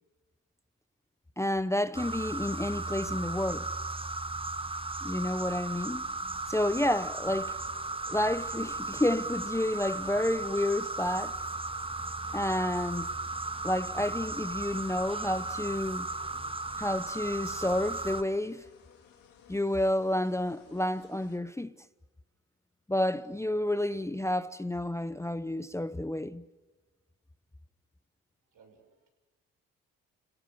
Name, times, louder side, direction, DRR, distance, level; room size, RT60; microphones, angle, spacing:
voice 1, 1.4-3.7 5.0-6.1 6.5-7.6 8.1-11.4 12.3-13.1 13.6-16.1 16.8-18.6 19.5-21.8 22.9-26.4, left 1 dB, 10° left, 0.8 m, -30 dB
sound 1, 1.9-18.2, right 2 dB, 15° right, 1.3 m, -36 dB
sound 2, 5.8-21.4, left 7 dB, 75° left, 3.9 m, -59 dB
voice 2, 28.5-29.1, right 5 dB, 70° right, 7.2 m, -60 dB
28.5 x 17.0 x 9.8 m
supercardioid pair, 65°, 34 cm